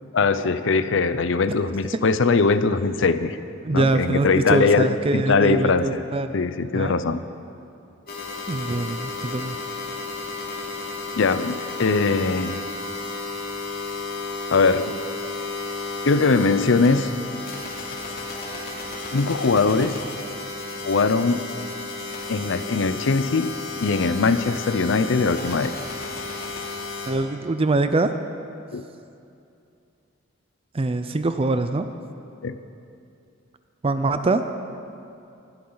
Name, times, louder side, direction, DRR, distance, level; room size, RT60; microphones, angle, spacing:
voice 1, 0.1-3.4 3.7-4.9 5.1-6.0 6.3-7.2 11.2-12.6 14.5-15.0 16.1-17.2 19.1-20.0 20.8-21.4 22.3-23.5 23.8-25.7 28.7-28.8 32.4-32.6, left 4 dB, 70° left, 12 dB, 0.6 m, -21 dB
voice 2, 3.6-6.4 6.7-7.0 8.5-9.6 27.1-28.1 30.7-31.9 33.8-34.4, right 2 dB, 30° right, 9 dB, 0.5 m, -23 dB
sound 1, 8.1-27.1, left 3 dB, 50° left, 3.0 m, -33 dB
20.5 x 12.5 x 4.0 m, 2.5 s
head